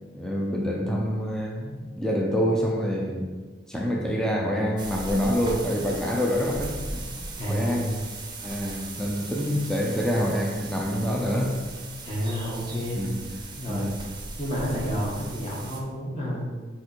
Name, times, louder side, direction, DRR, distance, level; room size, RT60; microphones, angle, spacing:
voice 1, 0.1-3.3 3.7-7.2 7.5-7.9 8.4-11.7 13.0-13.2 13.7-14.0, equal, 5° left, -1 dB, 0.6 m, -26 dB
sound 1, 4.8-15.8, right 2 dB, 25° right, 0.7 m, -38 dB
voice 2, 7.4-8.0 12.0-13.1 13.6-13.9 14.4-16.5, equal, 30° left, -5 dB, 1.7 m, -30 dB
4.9 x 4.3 x 4.6 m, 1.4 s
head